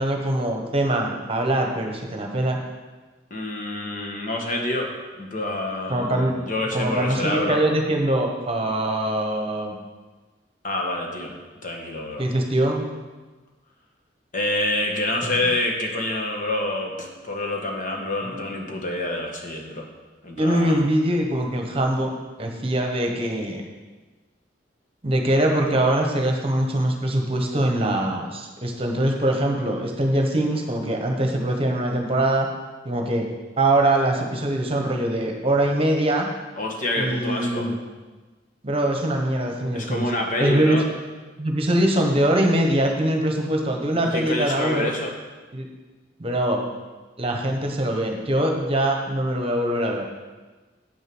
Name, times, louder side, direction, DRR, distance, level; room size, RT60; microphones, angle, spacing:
voice 1, 0.0-2.6 5.9-6.3 6.7-9.7 12.2-12.9 15.2-15.4 20.4-22.1 22.4-23.6 25.0-32.5 32.8-33.3 33.6-36.3 37.0-37.7 38.6-40.1 40.4-40.8 41.4-44.9 45.5-45.7 46.2-46.6 47.2-50.0, right 1 dB, 30° right, 2 dB, 1.2 m, -23 dB
voice 2, 3.3-4.9 5.2-7.6 10.6-11.3 11.6-12.2 14.3-19.9 20.2-20.9 36.6-37.7 39.7-40.8 44.0-45.1, left 1 dB, 45° left, 1 dB, 1.4 m, -27 dB
8.5 x 6.5 x 6.2 m, 1.3 s
head